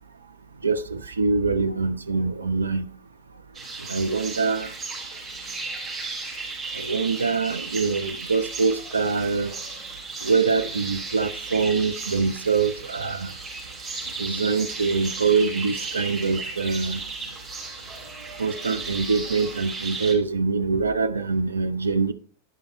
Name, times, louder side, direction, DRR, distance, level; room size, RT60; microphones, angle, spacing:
voice 1, 0.6-2.9 3.9-4.7 6.7-9.5 10.2-13.4 14.2-17.0 18.4-22.1, right 4 dB, 75° right, 0.4 m, -24 dB
sound 1, 3.5-20.1, right 3 dB, 10° right, 3.3 m, -35 dB
10.0 x 5.4 x 4.4 m
figure-of-eight pair, 90°, 0 cm